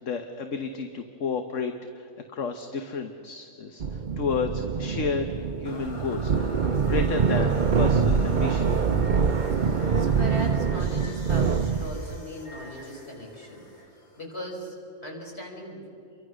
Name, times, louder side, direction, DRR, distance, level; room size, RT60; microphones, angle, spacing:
voice 1, 0.0-5.3 5.6-6.5 6.8-8.7, left 5 dB, 60° left, 6 dB, 1.4 m, -31 dB
sound 1, 3.8-12.2, right 6 dB, 45° right, 0.6 m, -25 dB
sound 2, 5.6-14.7, left 1 dB, 80° left, 3.3 m, -43 dB
voice 2, 9.7-13.6 14.2-14.8 15.0-15.8, equal, 45° left, -1 dB, 5.6 m, -38 dB
29.5 x 23.5 x 6.4 m, 2.8 s
omnidirectional pair, 1.5 m